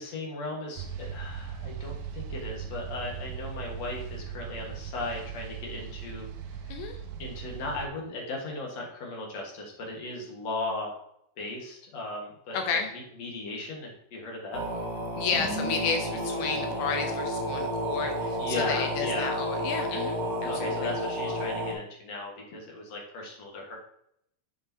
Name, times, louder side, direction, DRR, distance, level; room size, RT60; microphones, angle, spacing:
voice 1, 0.0-6.3 6.6-6.7 7.2-11.0 11.4-12.6 12.9-14.6 18.4-19.3 20.5-23.8, left 2 dB, 55° left, -1 dB, 2.1 m, -37 dB
sound 1, 0.8-7.9, right 7 dB, 90° right, 2.0 m, -39 dB
voice 2, 12.5-12.9 15.2-20.9, left 6 dB, 75° left, 5 dB, 2.5 m, -32 dB
sound 2, 14.5-21.7, equal, 50° right, 1.3 m, -31 dB
8.0 x 6.8 x 2.9 m, 0.72 s
omnidirectional pair, 4.9 m